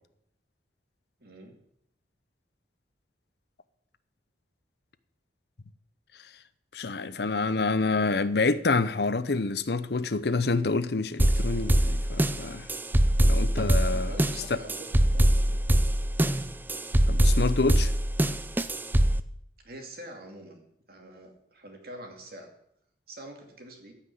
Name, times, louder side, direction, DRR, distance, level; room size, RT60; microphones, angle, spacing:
voice 1, 1.2-1.5 13.9-15.6 19.6-22.5 23.1-23.9, right 1 dB, 55° right, 2.4 m, -45 dB
voice 2, 6.7-12.7 13.2-14.1 17.1-17.9, left 3 dB, 60° left, 0.7 m, -27 dB
sound 1, 11.2-19.2, right 1 dB, 10° right, 0.4 m, -23 dB
14.5 x 5.9 x 8.4 m
head